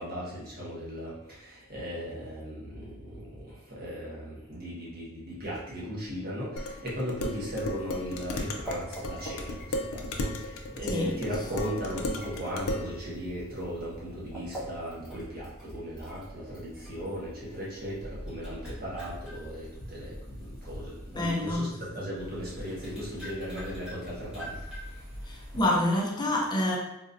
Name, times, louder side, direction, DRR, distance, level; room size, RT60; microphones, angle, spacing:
voice 1, 0.0-25.1 25.5-25.6, equal, 45° right, -7 dB, 1.2 m, -37 dB
Dishes pots and pans, 6.6-12.9, left 1 dB, 70° left, 0.4 m, -35 dB
sound 1, 7.2-21.6 22.2-25.6, equal, 5° right, 0.9 m, -44 dB
voice 2, 21.1-21.7 25.3-26.8, left 1 dB, 20° left, -2 dB, 0.5 m, -27 dB
4.0 x 2.6 x 2.5 m, 0.90 s
head